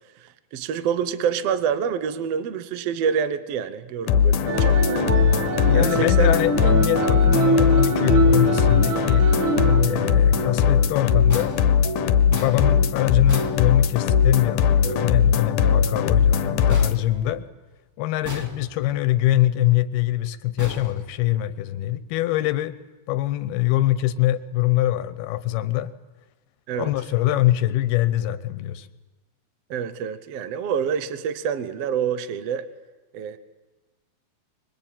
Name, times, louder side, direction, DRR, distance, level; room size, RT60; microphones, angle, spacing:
voice 1, 0.2-5.0 5.7-6.3 26.7-26.9 29.7-32.7 33.1-33.4, right 7 dB, 70° right, 12 dB, 1.5 m, -27 dB
sound 1, 4.1-17.0, left 7 dB, 70° left, 2.3 m, -20 dB
sound 2, 4.5-14.6 14.8-15.3 15.6-17.4, right 2 dB, 50° right, 1.7 m, -26 dB
voice 2, 5.6-9.3 9.8-11.5 12.3-17.4 18.0-22.7 23.1-25.9 26.7-28.9, left 15 dB, 90° left, 14 dB, 3.0 m, -23 dB
sound 3, 11.3-14.3 16.7-17.8 18.2-19.1 20.6-21.7, equal, 10° right, 0.9 m, -39 dB
25.5 x 22.0 x 9.0 m, 1.2 s
omnidirectional pair, 4.3 m